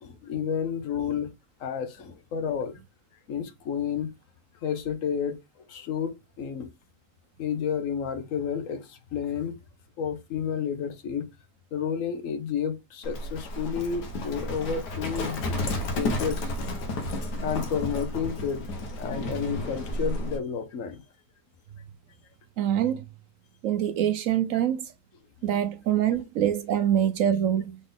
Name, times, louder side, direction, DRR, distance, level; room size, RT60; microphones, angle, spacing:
voice 1, 0.0-1.3 1.6-2.8 3.3-4.1 4.6-5.4 5.7-6.7 7.4-9.6 10.0-11.3 11.7-16.5 17.4-18.7 19.0-21.0, left 7 dB, 60° left, 1.0 m, -31 dB
Livestock farm animals working animals, 13.0-20.4, left 1 dB, 75° left, 1.5 m, -32 dB
voice 2, 22.6-23.1 23.6-24.9 25.4-27.8, right 10 dB, 70° right, 0.8 m, -25 dB
3.9 x 3.8 x 3.5 m
omnidirectional pair, 1.8 m